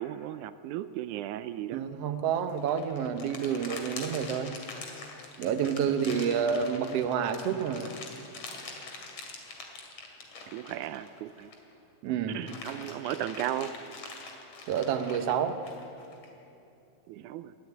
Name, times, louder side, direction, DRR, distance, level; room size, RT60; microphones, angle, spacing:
voice 1, 0.0-1.8 10.5-11.5 12.3-13.8 17.1-17.5, right 12 dB, 85° right, 12 dB, 2.0 m, -35 dB
voice 2, 1.7-4.6 5.4-8.0 12.0-12.4 14.7-15.6 17.2-17.3, right 7 dB, 65° right, 7 dB, 1.8 m, -29 dB
sound 1, 2.5-11.7 12.1-16.3, left 4 dB, 55° left, 3.3 m, -44 dB
22.0 x 13.0 x 9.3 m, 2.8 s
omnidirectional pair, 3.5 m